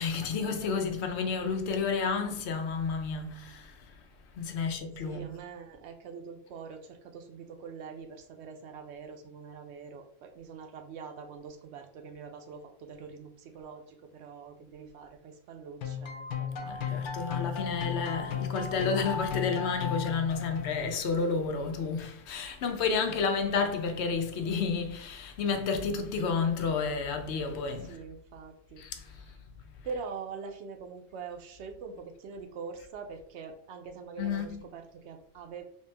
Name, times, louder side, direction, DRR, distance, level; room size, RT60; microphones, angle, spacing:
voice 1, 0.0-3.9 4.4-5.3 16.6-28.0 28.8-30.0 34.2-34.6, left 5 dB, 80° left, 0.9 m, -31 dB
voice 2, 4.6-17.3 27.8-28.8 29.8-35.6, right 5 dB, 85° right, 0.9 m, -44 dB
sound 1, 15.8-21.0, left 7 dB, 60° left, 0.6 m, -35 dB
3.2 x 2.9 x 3.3 m
omnidirectional pair, 1.1 m